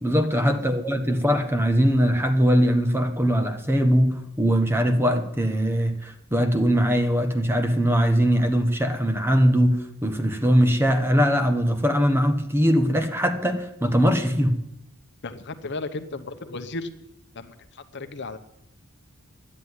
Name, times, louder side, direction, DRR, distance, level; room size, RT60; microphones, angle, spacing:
voice 1, 0.0-14.6, equal, 10° right, 1.2 m, -21 dB
voice 2, 15.2-16.9 17.4-17.5 17.9-18.4, left 3 dB, 55° left, 1.0 m, -34 dB
11.5 x 9.8 x 9.7 m
head